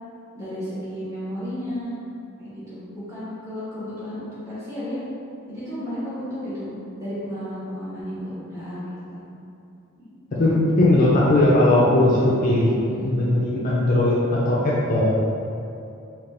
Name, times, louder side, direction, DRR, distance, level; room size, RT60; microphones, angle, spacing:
voice 1, 0.3-2.0 2.4-5.0 5.5-6.7 7.0-8.8 9.1-9.2 9.9-10.1 10.5-10.7 12.8-13.1, equal, 15° right, -12 dB, 1.2 m, -33 dB
voice 2, 10.4-12.7 13.0-15.1, left 1 dB, 40° left, -5 dB, 0.4 m, -18 dB
4.0 x 2.4 x 3.6 m, 2.7 s
head